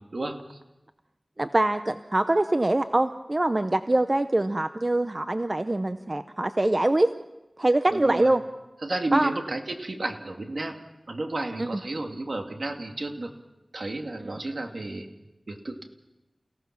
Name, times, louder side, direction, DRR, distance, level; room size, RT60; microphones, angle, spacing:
voice 1, 0.1-0.6 7.9-8.3 8.8-10.8 11.1-13.3 13.7-15.1 15.5-15.8, right 2 dB, 70° right, 4 dB, 2.1 m, -32 dB
voice 2, 1.4-7.1 7.6-8.4 9.1-9.3 11.6-11.8 14.2-14.4, right 1 dB, 40° right, 9 dB, 0.7 m, -24 dB
29.0 x 17.0 x 5.9 m, 1.0 s
wide cardioid pair, 65°, 0 cm